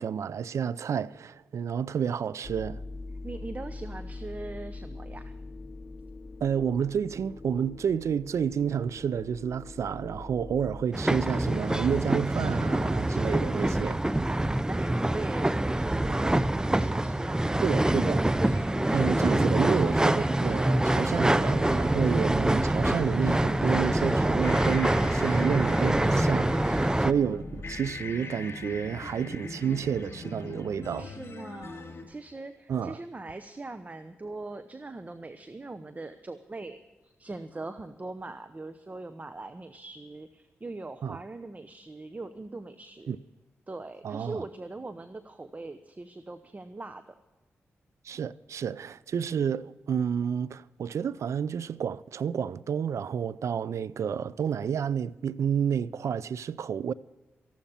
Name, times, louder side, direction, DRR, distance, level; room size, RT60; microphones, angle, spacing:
voice 1, 0.0-2.8 6.4-14.0 17.6-18.3 18.9-31.1 32.7-33.0 41.0-41.2 43.1-43.2 44.0-44.4 48.0-56.9, right 7 dB, 70° right, 0.5 m, -30 dB
sound 1, 2.4-10.8, left 3 dB, 30° left, 0.6 m, -42 dB
voice 2, 3.2-5.3 14.2-17.6 31.0-43.2 43.7-47.2, right 2 dB, 30° right, 0.9 m, -41 dB
sound 2, 10.9-27.1, right 1 dB, 15° right, 0.6 m, -25 dB
sound 3, 18.4-32.0, left 3 dB, 55° left, 3.4 m, -41 dB
14.5 x 12.0 x 5.7 m
cardioid pair, 50°, 5 cm